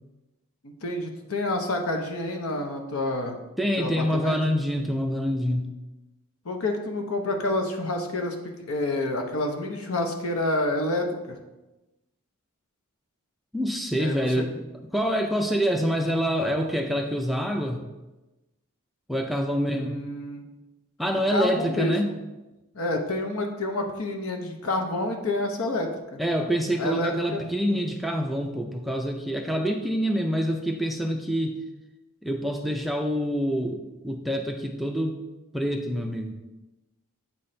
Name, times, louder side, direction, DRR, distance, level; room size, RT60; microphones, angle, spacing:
voice 1, 0.6-3.4 3.8-4.4 6.4-8.4 8.7-11.4 14.0-14.4 19.5-20.4 21.3-22.2 22.7-26.2 26.8-27.4, left 1 dB, 70° left, 3 dB, 0.9 m, -28 dB
voice 2, 3.6-5.7 13.5-14.5 14.9-17.8 19.1-20.0 21.0-22.1 26.2-31.6 32.2-35.2 35.5-36.3, equal, ahead, 2 dB, 0.4 m, -26 dB
8.5 x 4.2 x 3.2 m, 1.0 s
head